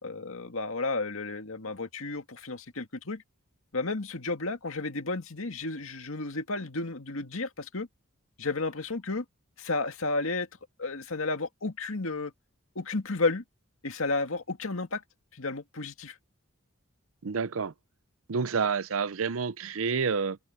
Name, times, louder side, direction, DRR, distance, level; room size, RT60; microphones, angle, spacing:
voice 1, 0.0-3.2 3.7-7.9 8.4-9.2 9.6-10.5 10.8-12.3 12.8-13.4 13.8-15.0 15.3-16.2, left 3 dB, 75° left, 2.0 m, -32 dB
voice 2, 17.2-17.7 18.3-20.4, right 5 dB, 75° right, 0.6 m, -29 dB
head